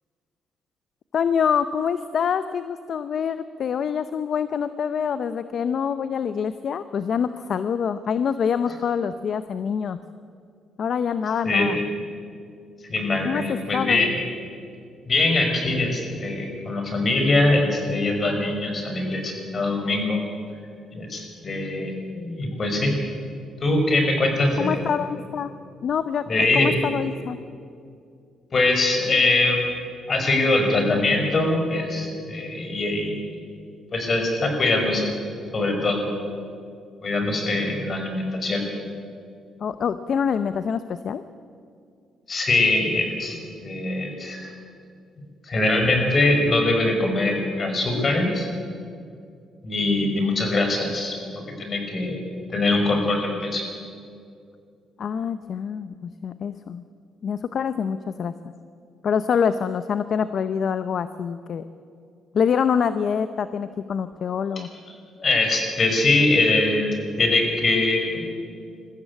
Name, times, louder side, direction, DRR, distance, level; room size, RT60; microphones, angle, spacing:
voice 1, 1.1-10.0 10.8-11.8 13.2-13.4 13.7-14.0 24.6-25.5 25.8-27.4 39.6-41.2 55.0-56.8 57.2-58.3 59.0-61.6 62.3-64.7, left 7 dB, 60° left, 12 dB, 0.7 m, -25 dB
voice 2, 12.9-14.1 15.1-20.2 20.9-22.9 23.6-24.8 26.3-26.8 28.5-29.6 30.1-33.2 33.9-35.1 35.5-36.0 37.0-38.6 42.3-43.4 43.6-44.5 45.4-48.5 49.6-51.2 51.6-52.2 52.5-53.6 65.2-66.9 67.2-68.2, left 2 dB, 40° left, 3 dB, 5.3 m, -22 dB
22.0 x 14.5 x 8.4 m, 2.3 s
cardioid pair, 90°, 0 cm